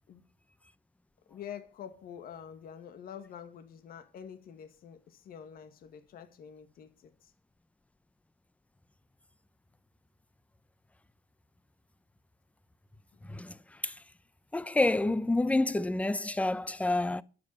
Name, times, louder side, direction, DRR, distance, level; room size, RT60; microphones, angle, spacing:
voice 1, 1.3-7.3, left 8 dB, 60° left, 2.0 m, -47 dB
voice 2, 14.5-17.2, left 2 dB, 10° left, 0.7 m, -28 dB
11.5 x 8.6 x 8.8 m
cardioid pair, 110°, 17 cm